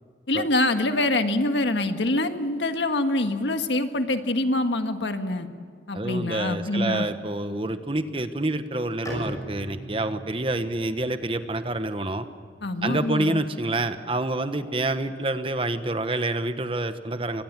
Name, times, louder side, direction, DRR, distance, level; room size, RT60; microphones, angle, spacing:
voice 1, 0.3-5.5 5.9-7.1 12.6-13.3, left 2 dB, 85° left, 7 dB, 1.6 m, -25 dB
voice 2, 5.9-12.3 12.8-17.4, right 2 dB, 30° right, 9 dB, 1.1 m, -27 dB
Bowed string instrument, 9.0-12.7, equal, 20° left, 5.9 m, -40 dB
24.0 x 20.5 x 7.5 m, 2.1 s
head